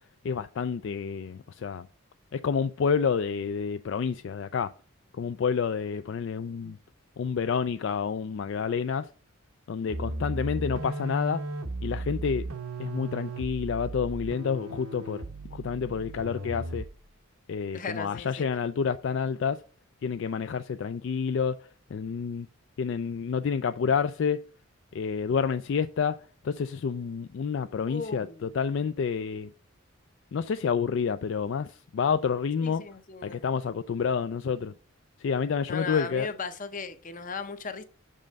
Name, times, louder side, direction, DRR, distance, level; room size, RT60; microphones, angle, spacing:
voice 1, 0.2-1.9 2.3-4.7 5.1-6.8 7.2-9.1 9.7-11.4 11.8-12.4 12.8-15.2 15.5-16.9 17.5-19.6 20.0-21.6 21.9-22.5 22.8-24.4 24.9-26.2 26.4-29.5 30.3-32.8 33.2-34.7 35.2-36.3, left 6 dB, 55° left, 0.3 m, -29 dB
sound 1, 9.9-17.1, right 2 dB, 80° right, 0.9 m, -36 dB
voice 2, 17.7-18.5 27.9-28.5 32.6-33.4 35.7-37.8, left 4 dB, 35° left, 0.7 m, -37 dB
6.4 x 5.5 x 5.1 m
head